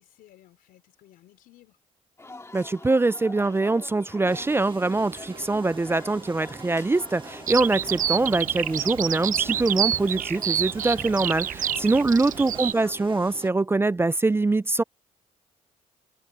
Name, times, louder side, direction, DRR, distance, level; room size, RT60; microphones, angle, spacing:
voice 1, 0.0-1.8 11.8-12.4, left 14 dB, 85° left, 4.4 m, -56 dB
sound 1, 2.2-12.9, left 3 dB, 20° left, 2.1 m, -45 dB
voice 2, 2.5-14.8, right 3 dB, 15° right, 0.4 m, -23 dB
sound 2, 4.3-13.5, right 5 dB, 35° right, 1.5 m, -44 dB
Bird vocalization bird call bird song, 7.5-12.7, right 10 dB, 65° right, 1.0 m, -28 dB
cardioid pair, 90°, 15 cm